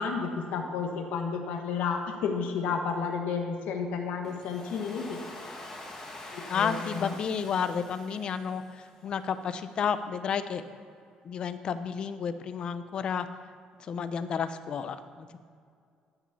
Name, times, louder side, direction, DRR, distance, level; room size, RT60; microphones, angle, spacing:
voice 1, 0.0-5.2 6.3-7.1, left 5 dB, 85° left, 4 dB, 1.4 m, -31 dB
Domestic sounds home sounds, 4.2-9.2, left 2 dB, 20° left, 1.4 m, -45 dB
voice 2, 6.5-8.6 9.0-10.6 11.3-13.3 13.9-15.4, left 7 dB, 40° left, 11 dB, 0.5 m, -31 dB
12.0 x 6.2 x 7.1 m, 2.3 s
cardioid pair, 175°, 2 cm